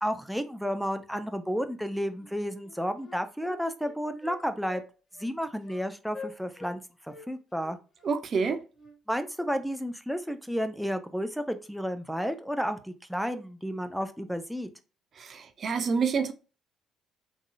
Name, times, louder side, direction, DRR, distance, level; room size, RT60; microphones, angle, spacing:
voice 1, 0.0-4.8 5.2-6.8 7.3-7.8 9.1-14.7, equal, ahead, 0.6 m, -32 dB
Wind instrument woodwind instrument, 2.2-2.3 2.6-4.4 4.7-4.9 5.1-5.3 5.6-5.8 6.1-6.8 7.1-9.0, left 4 dB, 25° left, 1.5 m, -46 dB
voice 2, 8.0-8.6 15.2-16.3, right 5 dB, 50° right, 0.4 m, -28 dB
3.6 x 3.2 x 2.3 m
hypercardioid pair, 50°, 0 cm